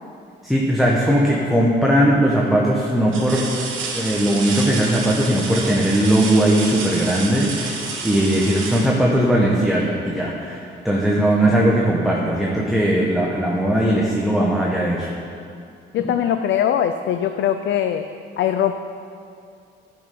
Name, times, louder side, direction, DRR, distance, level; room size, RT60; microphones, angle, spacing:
voice 1, 0.4-3.5 3.9-15.1 16.0-16.1, right 1 dB, ahead, -4 dB, 1.2 m, -19 dB
sound 1, 1.3-1.8 2.4-2.5 3.1-9.8 11.5-11.7 12.1-13.2 14.5-14.6, right 4 dB, 80° right, 1.4 m, -30 dB
voice 2, 15.9-18.1 18.4-18.7, left 10 dB, 70° left, 8 dB, 0.4 m, -21 dB
11.0 x 5.4 x 5.4 m, 2.4 s
cardioid pair, 90°, 20 cm